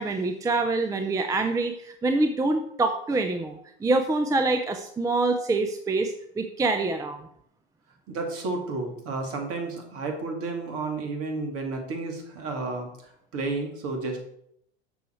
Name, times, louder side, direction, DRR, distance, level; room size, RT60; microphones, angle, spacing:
voice 1, 0.0-7.2, right 3 dB, 10° right, 7 dB, 0.5 m, -25 dB
voice 2, 8.1-12.9 13.3-14.3, right 3 dB, 45° right, 3 dB, 2.3 m, -31 dB
7.0 x 6.0 x 4.5 m, 0.71 s
hypercardioid pair, 95°, 33 cm